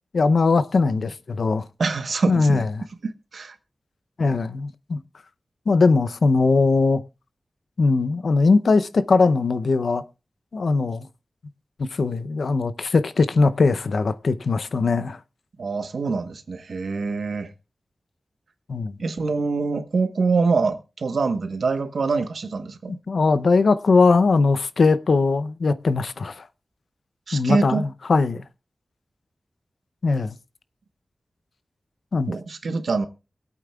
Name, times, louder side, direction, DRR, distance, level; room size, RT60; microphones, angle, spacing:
voice 1, 0.1-1.7 2.3-2.7 4.2-5.0 5.7-7.0 7.8-10.0 10.5-11.1 11.8-15.2 18.7-19.0 23.1-26.5 27.3-28.4 30.0-30.4 32.1-32.3, left 3 dB, 80° left, 0.5 m, -20 dB
voice 2, 1.8-2.7 3.0-3.5 15.6-17.5 19.0-23.0 27.3-27.8 32.3-33.1, right 4 dB, 90° right, 1.0 m, -25 dB
23.5 x 8.4 x 2.3 m
wide cardioid pair, 90°, 0 cm